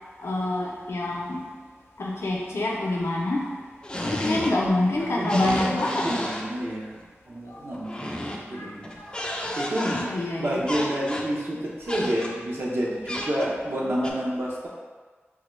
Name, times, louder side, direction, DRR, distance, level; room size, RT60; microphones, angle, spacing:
voice 1, 0.2-1.5 2.0-3.5 4.0-6.3 7.5-7.6 8.5-9.6 9.9-10.6, left 2 dB, 75° left, -3 dB, 0.6 m, -27 dB
sound 1, 3.8-4.7 4.9-6.5 7.7-8.5 8.8-10.1 10.7-11.3 11.8-12.3 13.1-13.6 14.0-14.1, left 1 dB, 20° left, 0.4 m, -31 dB
voice 2, 4.0-7.0 7.3-8.9 9.5-10.0 10.4-14.7, equal, 60° right, -5 dB, 0.7 m, -30 dB
3.6 x 2.2 x 3.1 m, 1.4 s
wide cardioid pair, 70°, 5 cm